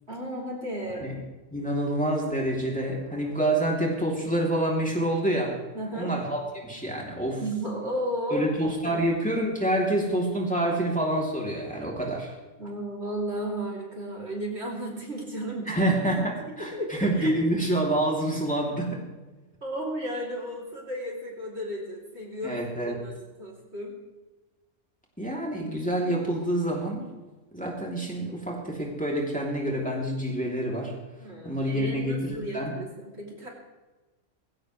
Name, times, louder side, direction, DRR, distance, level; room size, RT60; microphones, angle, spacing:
voice 1, 0.1-1.1 5.7-6.1 7.4-8.5 8.8-9.0 12.6-15.8 16.7-17.3 19.6-24.0 31.2-33.5, right 1 dB, 60° right, -2 dB, 3.6 m, -34 dB
voice 2, 1.5-5.5 5.9-7.4 8.3-12.4 15.7-19.0 22.4-23.0 25.2-27.0 27.5-30.9 31.4-32.7, right 1 dB, 5° left, -3 dB, 3.0 m, -27 dB
19.5 x 16.5 x 3.3 m, 1.2 s
omnidirectional pair, 1.3 m